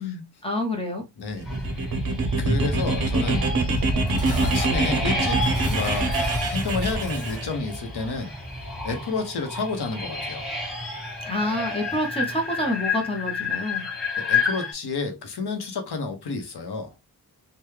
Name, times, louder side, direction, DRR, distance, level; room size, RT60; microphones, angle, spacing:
voice 1, 0.0-1.0 11.3-13.8, left 1 dB, 15° left, 0.7 m, -28 dB
voice 2, 1.2-1.7 2.4-3.5 4.3-10.5 14.2-16.9, left 4 dB, 80° left, 0.9 m, -30 dB
sound 1, 1.4-14.7, left 2 dB, ahead, 1.1 m, -28 dB
sound 2, 1.4-7.5, right 3 dB, 60° right, 0.7 m, -26 dB
Dishes pots and pans, 3.7-7.6, right 2 dB, 40° right, 1.6 m, -39 dB
3.4 x 2.2 x 3.1 m
wide cardioid pair, 145°, 38 cm